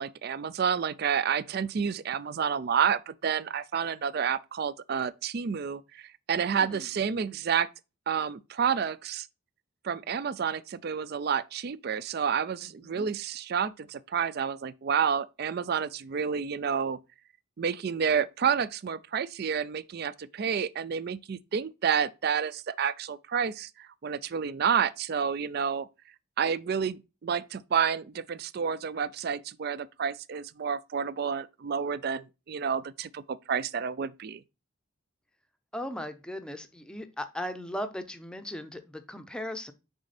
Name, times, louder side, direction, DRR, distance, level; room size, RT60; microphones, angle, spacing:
voice 1, 0.0-7.7 8.1-9.3 9.8-17.0 17.6-25.9 26.4-34.4, right 7 dB, 50° right, 0.4 m, -29 dB
voice 2, 6.6-6.9 12.6-13.1 35.7-39.7, left 1 dB, 5° left, 0.6 m, -38 dB
6.3 x 4.9 x 4.1 m
head